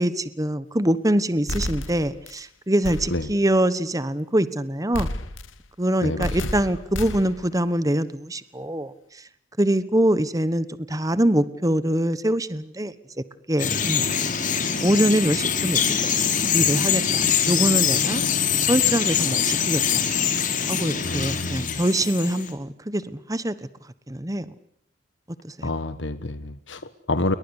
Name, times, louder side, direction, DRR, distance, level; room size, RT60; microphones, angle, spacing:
voice 1, 0.0-5.1 5.8-9.3 9.6-12.9 13.5-14.1 14.8-18.2 18.7-20.0 20.7-23.7 24.1-24.5 25.4-25.7, right 1 dB, 15° right, 14 dB, 1.2 m, -24 dB
sound 1, 1.5-2.4 2.8-3.4 4.9-5.7 6.2-7.5, left 1 dB, 85° left, 2.1 m, -31 dB
voice 2, 6.0-6.4 21.0-21.8 25.6-27.3, left 2 dB, 65° left, 12 dB, 1.3 m, -28 dB
Bird vocalization bird call bird song, 13.6-22.5, left 7 dB, 40° left, 4.2 m, -23 dB
29.5 x 23.0 x 8.3 m, 0.66 s
head